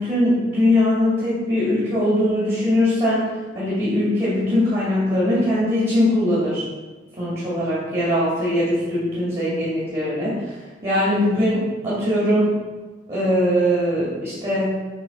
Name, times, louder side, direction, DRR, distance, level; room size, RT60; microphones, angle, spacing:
voice 1, 0.0-6.6 7.1-10.5 10.8-12.5 13.1-14.8, left 1 dB, 35° right, -9 dB, 2.4 m, -21 dB
9.0 x 3.5 x 5.6 m, 1.3 s
head